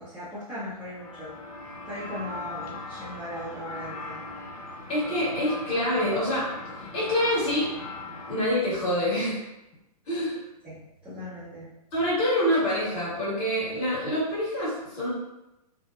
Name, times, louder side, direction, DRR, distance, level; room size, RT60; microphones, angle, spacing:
voice 1, 0.0-1.4 1.9-4.2 10.6-11.7, left 1 dB, 5° right, -13 dB, 0.6 m, -38 dB
sound 1, 0.9-8.5, left 2 dB, 65° left, 0.7 m, -39 dB
voice 2, 4.9-6.5 6.8-7.7 8.3-9.4 10.1-10.4 11.9-15.1, left 1 dB, 30° left, -8 dB, 1.4 m, -26 dB
2.7 x 2.0 x 2.4 m, 0.94 s
figure-of-eight pair, 115°, 20 cm